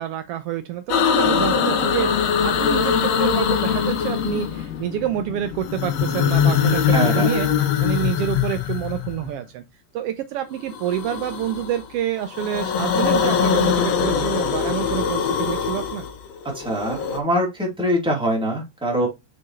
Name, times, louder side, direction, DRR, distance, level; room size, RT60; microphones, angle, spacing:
voice 1, 0.0-2.1 2.4-7.5 7.8-9.6 9.9-16.1, right 11 dB, 85° right, 1.3 m, -27 dB
sound 1, 0.9-4.8 5.6-9.3 10.7-11.8 12.2-17.2, left 7 dB, 70° left, 2.0 m, -22 dB
sound 2, 1.2-7.3, left 10 dB, 85° left, 2.6 m, -36 dB
voice 2, 6.9-7.3 16.5-19.1, equal, ahead, 2.1 m, -23 dB
6.6 x 5.3 x 3.1 m
omnidirectional pair, 3.4 m